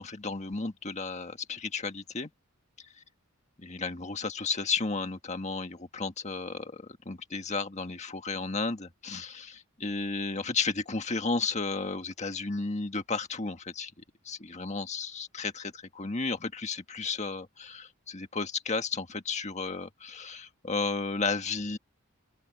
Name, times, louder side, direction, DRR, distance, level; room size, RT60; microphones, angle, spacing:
voice 1, 0.0-2.3 2.8-2.9 3.6-13.9 14.2-21.8, left 4 dB, 35° left, 1.6 m, -33 dB
open air
head